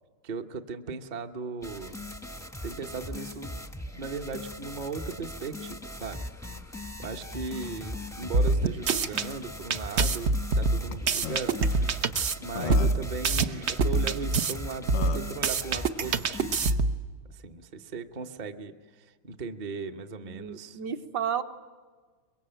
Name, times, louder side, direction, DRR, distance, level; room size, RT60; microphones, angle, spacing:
voice 1, 0.2-2.1 2.6-3.6 4.0-6.2 7.0-11.7 12.4-16.6 17.3-20.8, right 4 dB, 40° right, 5 dB, 0.6 m, -37 dB
sound 1, 1.6-16.7, left 1 dB, 5° left, 0.6 m, -40 dB
sound 2, 8.3-9.3 9.7-12.3 12.7-14.5 14.9-17.0, right 3 dB, 80° right, 0.6 m, -25 dB
Burping eructation, 10.9-11.0 11.2-11.4 12.2-12.3 12.6-13.1 14.4-14.5 14.9-15.3, left 7 dB, 90° left, 2.2 m, -35 dB
voice 2, 20.3-21.4, right 8 dB, 60° right, 7 dB, 1.4 m, -32 dB
24.0 x 22.5 x 9.0 m, 1.4 s
omnidirectional pair, 2.4 m